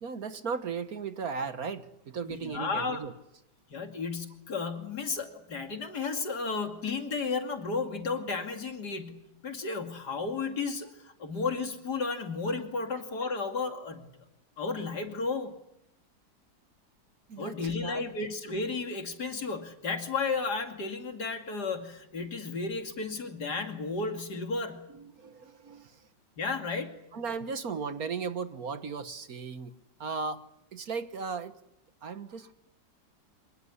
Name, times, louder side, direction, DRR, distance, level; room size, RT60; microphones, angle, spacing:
voice 1, 0.0-3.1 17.3-18.1 25.0-26.0 27.1-29.7 30.0-30.5 30.7-31.6 32.0-32.5, right 5 dB, 55° right, 11 dB, 1.6 m, -36 dB
voice 2, 2.3-3.0 3.7-14.1 14.6-15.5 17.4-24.9 26.4-27.1, left 4 dB, 60° left, 5 dB, 3.0 m, -33 dB
26.0 x 19.5 x 9.9 m, 0.81 s
omnidirectional pair, 2.0 m